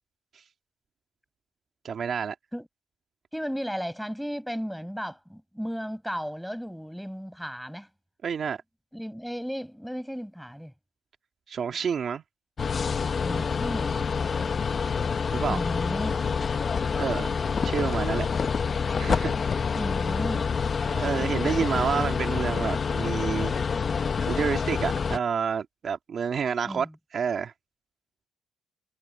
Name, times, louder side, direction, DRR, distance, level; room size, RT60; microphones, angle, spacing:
voice 1, 1.8-2.4 8.2-8.6 11.5-12.2 15.3-15.6 17.0-18.3 19.0-19.6 20.9-23.6 24.2-26.9 27.1-27.5, right 7 dB, 50° right, 2.0 m, -29 dB
voice 2, 3.3-7.9 8.9-10.7 13.2-13.9 15.5-16.2 19.7-20.5 21.5-21.6 26.6-26.9, equal, ahead, 7.0 m, -34 dB
sound 1, 12.6-25.2, left 5 dB, 40° left, 1.3 m, -27 dB
cardioid pair, 90°, 0 cm